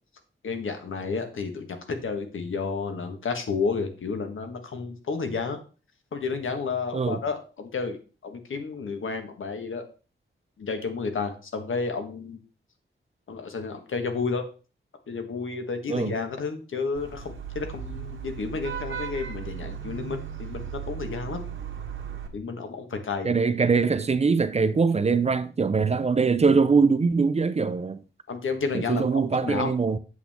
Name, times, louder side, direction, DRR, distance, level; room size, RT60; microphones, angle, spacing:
voice 1, 0.4-1.8 2.0-5.6 6.1-9.8 10.6-12.4 13.3-14.5 15.1-21.4 22.3-23.4 28.3-29.7, left 4 dB, 80° left, 1.5 m, -31 dB
Vehicle horn car horn honking / Traffic noise roadway noise, 17.0-22.3, right 8 dB, 70° right, 1.3 m, -36 dB
voice 2, 23.2-28.0 28.7-30.0, right 4 dB, 30° right, 0.5 m, -22 dB
8.2 x 7.4 x 3.6 m
wide cardioid pair, 165°, 20 cm